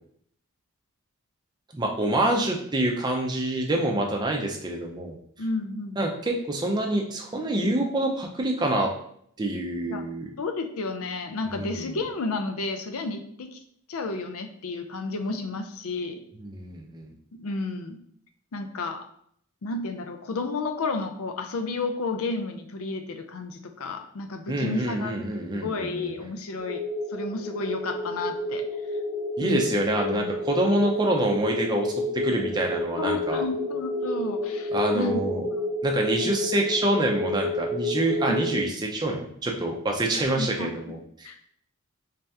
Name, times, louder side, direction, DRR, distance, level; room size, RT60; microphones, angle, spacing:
voice 1, 1.7-5.2 6.0-8.9 9.4-10.3 11.5-12.0 16.4-17.1 24.5-26.3 29.4-33.4 34.7-35.5 35.8-41.3, right 1 dB, 20° right, 1 dB, 0.5 m, -26 dB
voice 2, 5.4-6.0 9.9-10.0 10.4-13.6 13.9-16.2 17.4-18.0 18.5-19.1 19.6-26.8 27.1-28.6 29.4-29.8 30.1-30.3 30.6-30.8 33.0-35.2 35.6-35.7 38.3-38.4 40.4-40.8 41.2-41.4, left 3 dB, 80° left, 7 dB, 0.5 m, -32 dB
sound 1, 26.6-38.6, left 2 dB, ahead, 0.8 m, -30 dB
3.3 x 2.8 x 3.4 m, 0.67 s
head